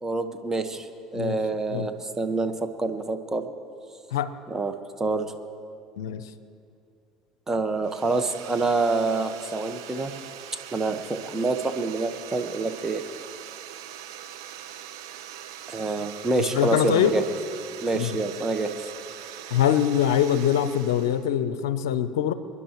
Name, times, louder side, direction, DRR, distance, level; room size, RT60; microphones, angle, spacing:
voice 1, 0.0-3.5 4.5-5.3 7.5-10.1 10.7-13.0 15.7-17.2 17.8-18.7, right 3 dB, 20° right, 7 dB, 1.3 m, -27 dB
voice 2, 6.0-6.3 16.5-17.1 17.9-18.2 19.5-22.3, left 10 dB, 80° left, 13 dB, 0.6 m, -23 dB
sound 1, 7.8-21.3, right 10 dB, 80° right, 0.9 m, -42 dB
27.5 x 11.0 x 3.1 m, 2.5 s
hypercardioid pair, 70°, 2 cm